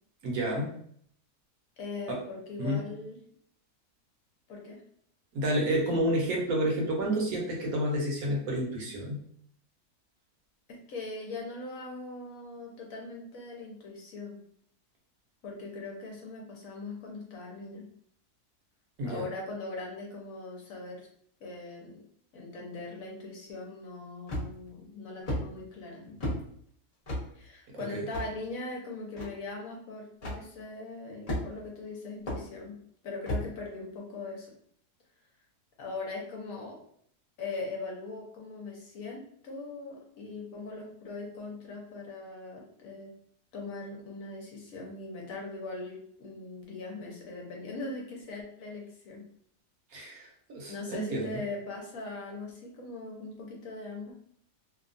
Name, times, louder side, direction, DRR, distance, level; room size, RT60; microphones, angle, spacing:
voice 1, 0.2-0.7 2.1-2.2 2.6-2.8 5.3-9.2 19.0-19.2 27.7-28.0 49.9-51.4, right 1 dB, 70° right, -2 dB, 1.2 m, -30 dB
voice 2, 1.8-3.2 4.5-4.8 10.7-14.4 15.4-17.9 19.0-21.1 21.4-22.0 22.3-26.2 27.3-32.8 33.0-34.5 35.8-36.8 37.4-43.1 43.5-49.2 50.1-50.3 50.7-54.2, left 3 dB, 65° left, -1 dB, 1.1 m, -40 dB
sound 1, 24.3-24.7 25.3-25.4 26.2-26.4 27.1-27.3 28.1-28.3 29.2-29.3 30.2-30.4 31.3-31.7 32.3-32.4 33.3-33.5, left 1 dB, 30° left, 0.8 m, -32 dB
2.9 x 2.2 x 2.5 m, 0.64 s
omnidirectional pair, 1.7 m